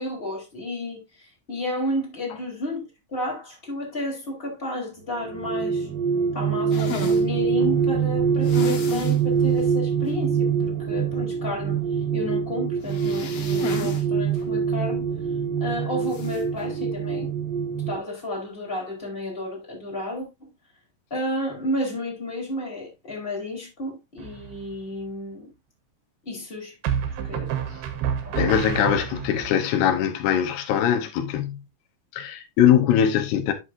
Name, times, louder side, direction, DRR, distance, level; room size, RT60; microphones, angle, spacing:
voice 1, 0.0-2.8 3.1-5.9 6.3-11.8 12.1-15.1 15.6-17.3 17.9-20.5 21.1-25.5 26.2-26.7 27.2-27.6 28.2-28.9, left 1 dB, 15° left, 3.4 m, -32 dB
sound 1, 5.1-17.9, right 6 dB, 55° right, 4.0 m, -24 dB
sound 2, 6.7-7.2 8.4-9.2 9.6-9.7 10.1-10.2 12.8-14.0 14.3-14.4 16.1-16.4, left 6 dB, 55° left, 1.9 m, -34 dB
sound 3, 24.2-24.7 26.8-29.5, right 9 dB, 80° right, 3.1 m, -29 dB
voice 2, 28.4-31.6 32.1-33.5, left 9 dB, 90° left, 3.1 m, -21 dB
11.0 x 6.3 x 2.6 m
omnidirectional pair, 4.5 m